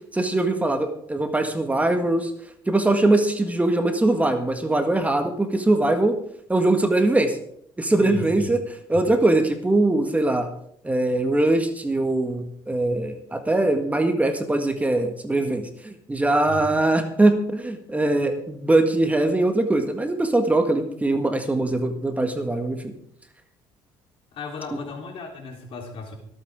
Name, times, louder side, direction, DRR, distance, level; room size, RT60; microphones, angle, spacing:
voice 1, 0.1-2.3 2.7-6.2 6.5-7.4 7.8-10.5 10.8-22.9, right 2 dB, 15° right, 6 dB, 1.8 m, -22 dB
voice 2, 8.0-8.5 8.9-9.0 16.5-16.7 24.3-26.2, left 3 dB, 60° left, 2 dB, 3.8 m, -35 dB
24.5 x 8.9 x 3.8 m, 0.70 s
supercardioid pair, 80°, 10 cm